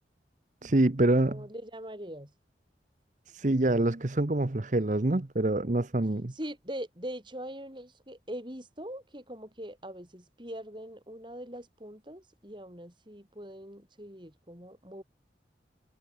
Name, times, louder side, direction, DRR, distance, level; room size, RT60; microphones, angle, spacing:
voice 1, 0.6-1.5 3.3-6.3, right 2 dB, 45° right, 0.9 m, -26 dB
voice 2, 1.3-2.3 6.3-15.0, equal, 25° right, 7.3 m, -42 dB
head